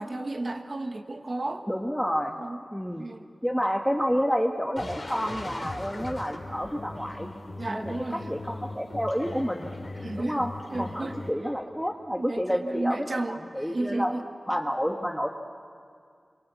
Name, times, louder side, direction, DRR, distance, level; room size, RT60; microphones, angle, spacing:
voice 1, 0.0-1.7 2.4-2.6 3.0-3.3 7.6-8.3 10.0-11.2 12.1-14.3, right 2 dB, 50° right, 6 dB, 1.6 m, -33 dB
voice 2, 1.7-2.4 2.7-3.1 3.4-7.3 7.7-9.7 10.2-10.5 10.8-14.1 14.5-15.4, equal, ahead, 3 dB, 1.3 m, -29 dB
sound 1, 4.8-11.3, left 2 dB, 50° left, 3.0 m, -39 dB
27.0 x 25.0 x 8.3 m, 2.2 s
wide cardioid pair, 65°, 0 cm